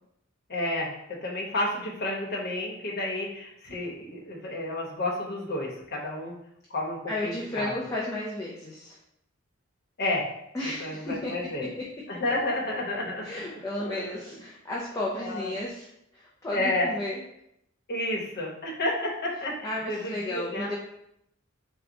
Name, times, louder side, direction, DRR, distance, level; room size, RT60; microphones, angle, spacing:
voice 1, 0.5-6.3 6.7-7.7 10.0-10.3 10.8-11.7 12.1-13.3 13.5-14.2 15.1-15.5 16.5-16.9 17.9-20.8, left 1 dB, 50° left, -2 dB, 1.0 m, -31 dB
voice 2, 7.1-9.0 10.5-11.3 13.2-17.2 19.6-20.8, left 1 dB, 15° left, -5 dB, 0.5 m, -33 dB
3.9 x 2.2 x 4.5 m, 0.78 s
head